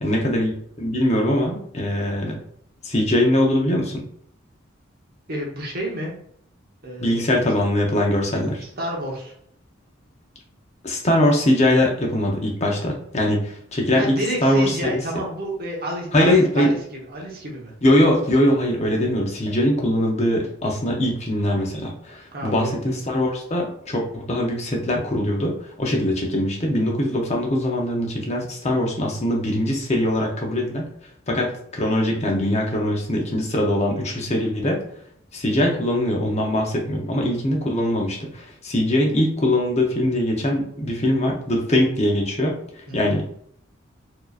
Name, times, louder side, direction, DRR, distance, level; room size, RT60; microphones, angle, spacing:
voice 1, 0.0-0.5 0.8-2.4 2.8-4.0 7.0-8.6 10.8-15.2 16.1-16.7 17.8-30.8 31.3-34.8 35.3-43.3, left 1 dB, 35° left, 0 dB, 0.7 m, -22 dB
voice 2, 5.3-6.1 6.8-7.5 8.6-9.3 13.9-17.7 22.3-23.0 42.9-43.2, right 1 dB, 50° right, -1 dB, 1.0 m, -30 dB
4.7 x 2.8 x 2.4 m, 0.66 s
head